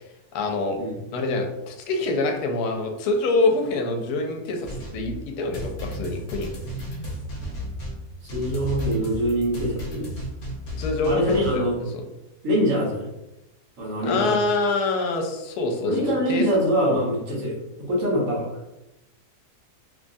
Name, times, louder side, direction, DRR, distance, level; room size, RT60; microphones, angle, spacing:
voice 1, 0.3-0.8 1.1-6.5 10.8-11.6 14.0-15.9 16.3-16.4 16.7-17.0, left 3 dB, 85° left, 3 dB, 1.1 m, -25 dB
sound 1, 4.6-11.6, equal, 60° left, 1.0 m, -33 dB
voice 2, 8.2-10.1 11.1-11.8 12.4-13.1 13.8-14.3 15.8-18.5, equal, 60° right, -4 dB, 1.2 m, -24 dB
3.1 x 2.3 x 2.5 m, 0.95 s
omnidirectional pair, 1.6 m